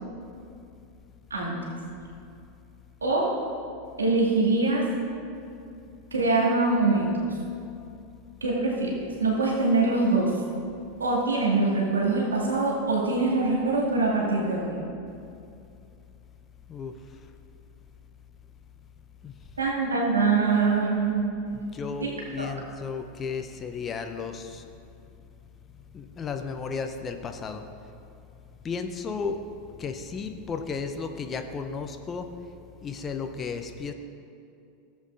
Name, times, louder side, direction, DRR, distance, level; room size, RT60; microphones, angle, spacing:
voice 1, 3.0-3.3 4.0-4.9 6.1-7.3 8.4-10.3 11.0-14.8 19.6-21.4 22.0-22.1 22.4-22.5, right 3 dB, 75° right, -4 dB, 2.1 m, -24 dB
voice 2, 21.5-24.7 25.9-27.6 28.6-29.4 29.8-32.3 32.8-33.9, left 5 dB, 25° left, 6 dB, 0.6 m, -34 dB
16.0 x 7.4 x 2.5 m, 2.6 s
figure-of-eight pair, 85°, 0 cm